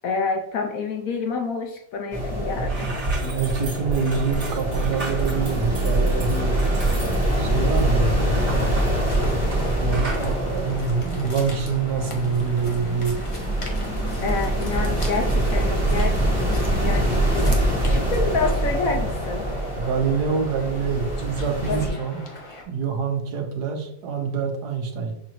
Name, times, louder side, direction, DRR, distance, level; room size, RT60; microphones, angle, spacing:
voice 1, 0.0-2.9 14.2-19.5 21.7-21.9, left 4 dB, 70° left, 4 dB, 0.8 m, -28 dB
sound 1, 2.1-21.9, right 1 dB, 10° right, 1.1 m, -24 dB
sound 2, 2.2-2.3 2.5-9.7 9.9-10.3, right 3 dB, 50° right, 1.9 m, -32 dB
voice 2, 3.1-6.6 7.4-8.4 9.8-13.2 19.8-22.2 22.7-25.2, right 6 dB, 75° right, 3 dB, 1.3 m, -26 dB
sound 3, 9.0-22.6, left 1 dB, 50° left, 0.3 m, -39 dB
6.6 x 2.6 x 2.9 m, 0.77 s
omnidirectional pair, 1.8 m